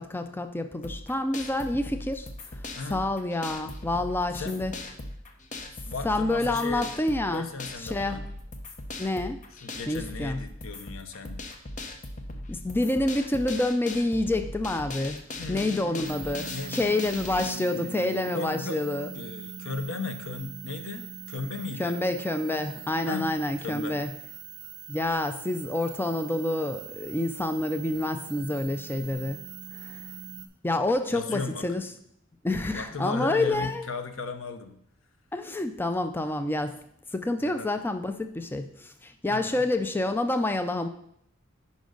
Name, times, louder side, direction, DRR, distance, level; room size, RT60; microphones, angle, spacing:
voice 1, 0.0-2.6 2.9-4.7 6.0-7.5 7.8-8.2 9.0-9.4 9.9-10.4 12.5-19.1 21.8-24.1 24.9-29.4 29.7-30.0 30.6-31.9 32.4-33.8 35.3-36.8 37.1-40.9, left 2 dB, 10° left, 8 dB, 0.4 m, -28 dB
sound 1, 0.8-17.5, left 2 dB, 40° left, 0.8 m, -39 dB
voice 2, 2.8-3.1 4.3-4.6 5.9-6.9 7.3-8.3 9.5-11.4 15.4-16.9 17.3-18.9 19.1-22.0 23.1-23.3 23.6-24.0 31.1-31.7 32.7-34.8 37.4-37.7 39.3-39.6, left 4 dB, 70° left, 9 dB, 0.7 m, -36 dB
sound 2, 16.0-30.5, right 8 dB, 55° right, 1.1 m, -42 dB
10.0 x 5.3 x 3.9 m, 0.71 s
head